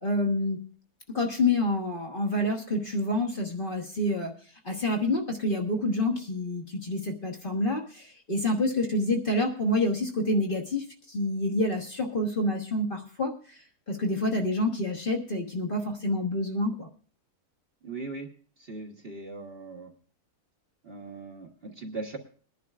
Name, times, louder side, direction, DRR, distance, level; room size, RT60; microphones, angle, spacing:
voice 1, 0.0-0.6 1.1-4.3 4.6-13.6 13.9-16.9, left 1 dB, 35° left, 1 dB, 1.4 m, -28 dB
voice 2, 17.8-18.3 18.6-19.9 20.8-22.2, right 3 dB, 40° right, 1 dB, 1.4 m, -39 dB
22.5 x 11.0 x 2.4 m, 0.41 s
omnidirectional pair, 1.6 m